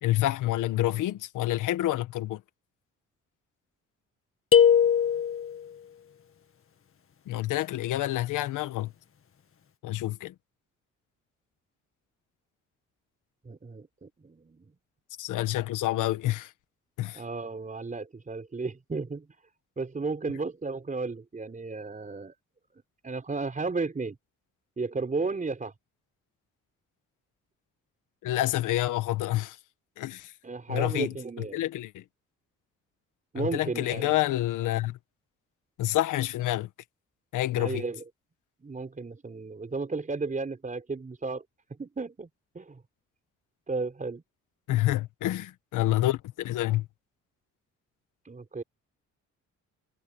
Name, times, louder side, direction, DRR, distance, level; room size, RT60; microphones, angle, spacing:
voice 1, 0.0-2.4 7.3-8.9 9.8-10.3 15.2-16.5 17.0-17.2 28.2-29.6 30.0-30.3 30.7-32.0 33.3-35.0 35.8-36.7 37.3-37.8 44.7-46.9, left 15 dB, 85° left, 1.6 m, -28 dB
sound 1, 4.5-5.6, left 8 dB, 45° left, 1.9 m, -20 dB
voice 2, 13.4-14.6 17.1-19.3 19.8-22.3 23.0-24.2 24.8-25.7 30.4-31.6 33.3-34.1 37.6-38.0 38.6-41.4 41.8-42.3 42.5-42.8 43.7-44.2 48.2-48.6, right 3 dB, 25° right, 4.5 m, -34 dB
cardioid pair, 90°, 30 cm